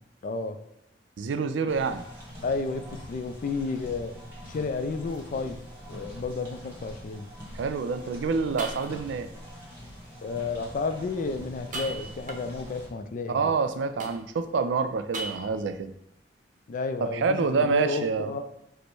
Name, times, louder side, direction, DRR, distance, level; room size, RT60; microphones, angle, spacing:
voice 1, 0.2-0.6 2.4-4.1 4.5-5.6 5.9-7.3 10.2-13.5 16.7-18.4, left 4 dB, 45° left, 8 dB, 0.4 m, -32 dB
voice 2, 1.2-2.0 7.5-9.3 13.3-15.9 17.0-18.3, right 4 dB, 75° right, 9 dB, 0.4 m, -27 dB
sound 1, 1.7-12.9, equal, 10° right, 1.3 m, -44 dB
sound 2, 4.5-4.6 5.1-5.2 5.9-6.0 8.0-8.1 8.6-9.3 11.6-12.7 14.0-14.6 15.1-15.8, right 3 dB, 45° right, 0.7 m, -38 dB
5.1 x 2.1 x 4.6 m, 0.80 s
head